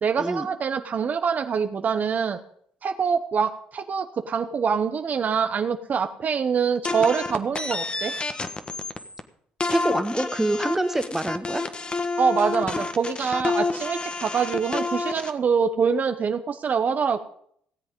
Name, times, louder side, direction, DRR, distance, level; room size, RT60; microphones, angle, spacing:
voice 1, 0.0-2.4 2.8-8.1 12.2-17.2, right 6 dB, 50° right, 8 dB, 0.9 m, -25 dB
sound 1, 6.8-9.2 9.6-15.3, left 3 dB, 30° left, 1.3 m, -29 dB
voice 2, 9.7-11.7, right 1 dB, 10° right, 9 dB, 1.3 m, -25 dB
17.5 x 7.9 x 5.3 m, 0.66 s
supercardioid pair, 65°, 4 cm